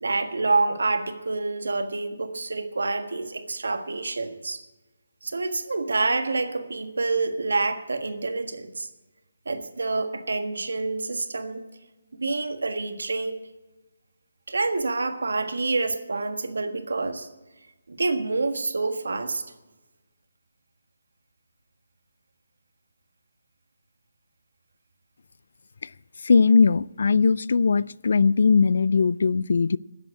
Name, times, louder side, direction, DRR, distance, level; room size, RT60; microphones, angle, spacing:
voice 1, 0.0-4.6 5.2-8.9 9.4-11.6 12.1-13.4 14.5-17.3 17.9-19.4, right 3 dB, 80° right, 1.5 m, -27 dB
voice 2, 26.2-29.8, left 5 dB, 65° left, 0.3 m, -19 dB
10.5 x 7.9 x 9.5 m
figure-of-eight pair, 155°, 0 cm